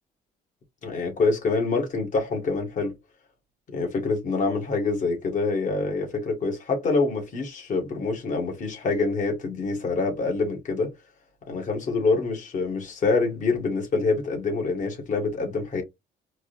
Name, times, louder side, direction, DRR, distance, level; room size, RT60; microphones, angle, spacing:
voice 1, 0.8-2.9 3.7-10.9 11.5-15.8, left 3 dB, 50° left, 2.3 m, -26 dB
4.6 x 3.0 x 2.7 m
cardioid pair, 110°, 17 cm